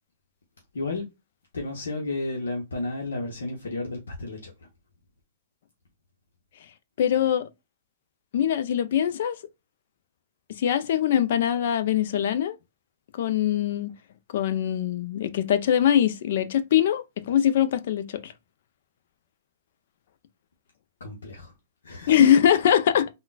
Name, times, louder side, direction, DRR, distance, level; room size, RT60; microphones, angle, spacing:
voice 1, 0.7-1.1 1.5-4.7 21.0-21.5 21.8-22.3, left 2 dB, 80° left, 0.8 m, -32 dB
voice 2, 7.0-7.5 8.3-9.4 10.5-12.6 13.2-13.9 14.3-18.3 22.1-23.1, left 10 dB, 60° left, 0.4 m, -22 dB
3.7 x 2.1 x 2.3 m
hypercardioid pair, 120°, 0 cm